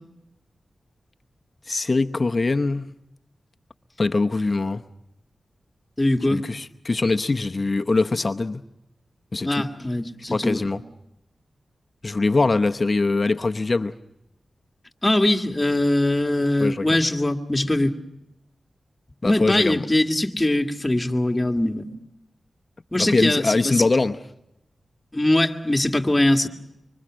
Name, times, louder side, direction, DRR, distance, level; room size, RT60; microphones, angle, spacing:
voice 1, 1.7-2.9 4.0-4.8 6.3-8.6 9.3-9.7 10.3-10.8 12.0-13.9 16.6-17.0 19.2-19.8 23.0-24.2, left 3 dB, 40° left, 0.9 m, -22 dB
voice 2, 6.0-6.4 9.4-10.7 15.0-18.0 19.2-21.9 22.9-23.9 25.1-26.5, left 1 dB, 20° left, 2.0 m, -22 dB
25.5 x 25.0 x 6.3 m
cardioid pair, 65°, 0 cm